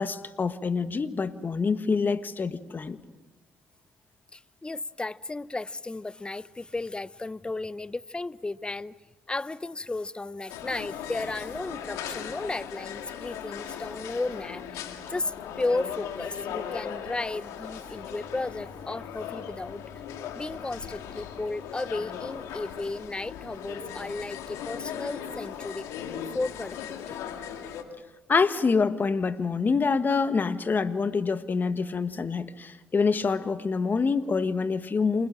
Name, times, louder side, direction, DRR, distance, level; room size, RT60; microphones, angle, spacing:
voice 1, 0.0-3.0 28.3-35.3, left 4 dB, 40° left, 1.5 m, -26 dB
voice 2, 4.3-8.9 9.3-19.9 20.3-25.9 26.3-27.2, left 2 dB, 20° left, 0.7 m, -34 dB
sound 1, 10.5-27.8, left 8 dB, 85° left, 2.1 m, -38 dB
29.0 x 21.0 x 7.4 m
supercardioid pair, 65°, 5 cm